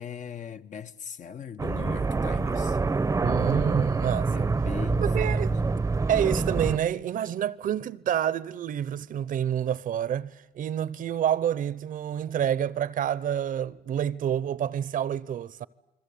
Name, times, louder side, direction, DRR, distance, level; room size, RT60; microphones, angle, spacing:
voice 1, 0.0-2.8 4.3-5.8, left 8 dB, 45° left, 1.2 m, -40 dB
sound 1, 1.6-6.8, right 4 dB, 15° right, 0.9 m, -26 dB
voice 2, 3.2-4.5 5.0-5.5 6.1-15.7, right 10 dB, 55° right, 0.9 m, -28 dB
29.0 x 21.5 x 8.5 m
cardioid pair, 110°, 17 cm